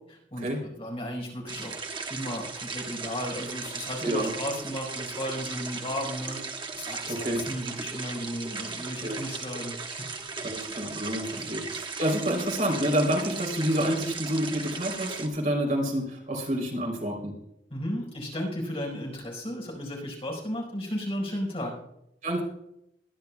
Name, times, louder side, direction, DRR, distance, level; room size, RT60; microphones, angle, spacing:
voice 1, 0.1-1.8 2.1-6.4 6.8-10.1 11.3-11.5 17.7-21.7, equal, 35° left, -1 dB, 4.6 m, -34 dB
sound 1, 1.5-15.3, right 4 dB, 30° right, 1.2 m, -37 dB
voice 2, 7.1-7.4 9.0-9.2 10.4-17.3 22.2-22.4, right 1 dB, 45° right, 0 dB, 3.4 m, -28 dB
22.0 x 10.5 x 2.3 m, 0.78 s
head